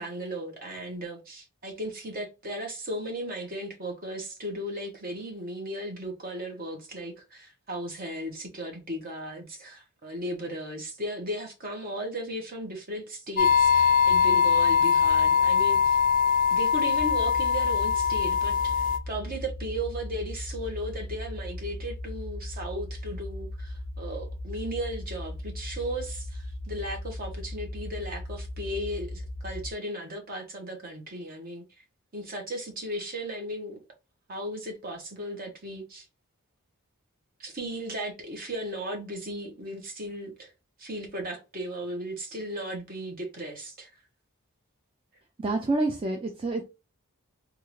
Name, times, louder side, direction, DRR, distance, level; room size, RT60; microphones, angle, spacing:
voice 1, 0.0-16.0 16.5-31.6 32.1-33.8 34.3-36.1 37.4-40.5 40.8-43.9, right 1 dB, 40° right, 1.1 m, -36 dB
sound 1, 13.4-19.0, left 6 dB, 40° left, 0.4 m, -22 dB
sound 2, 16.9-29.7, left 1 dB, 65° right, 0.9 m, -37 dB
voice 2, 45.4-46.6, right 2 dB, 25° right, 0.4 m, -27 dB
3.6 x 2.4 x 3.1 m
head